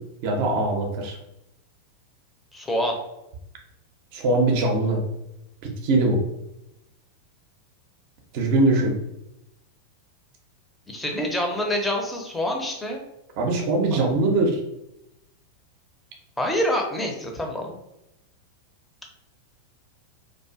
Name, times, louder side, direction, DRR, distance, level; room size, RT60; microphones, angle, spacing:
voice 1, 0.2-1.2 4.1-5.0 5.6-6.2 8.3-8.9 13.4-14.6, right 2 dB, 45° right, 2 dB, 0.5 m, -22 dB
voice 2, 2.5-3.0 10.9-13.0 13.9-14.0 16.4-17.7, equal, 10° left, 2 dB, 0.5 m, -26 dB
2.4 x 2.3 x 2.3 m, 0.87 s
figure-of-eight pair, 90°, 0 cm